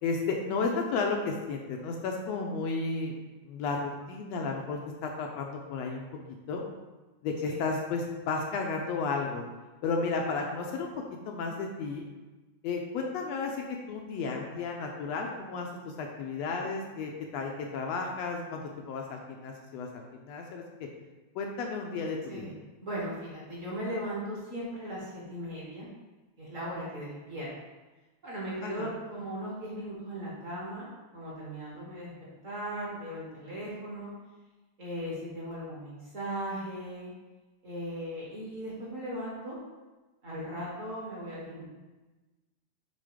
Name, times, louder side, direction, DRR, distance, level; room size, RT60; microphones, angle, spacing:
voice 1, 0.0-3.1 3.5-6.0 6.5-6.6 7.2-9.4 9.8-10.9 11.3-12.0 12.6-19.9 20.2-20.9 21.3-22.5 28.6-29.0, left 4 dB, 75° left, 1 dB, 1.7 m, -33 dB
voice 2, 22.8-25.9 26.4-27.5 28.2-30.9 31.1-32.1 32.4-34.1 34.8-37.1 37.6-39.6 40.2-41.6, equal, 40° right, -6 dB, 1.2 m, -38 dB
7.6 x 3.7 x 5.0 m, 1.2 s
omnidirectional pair, 3.3 m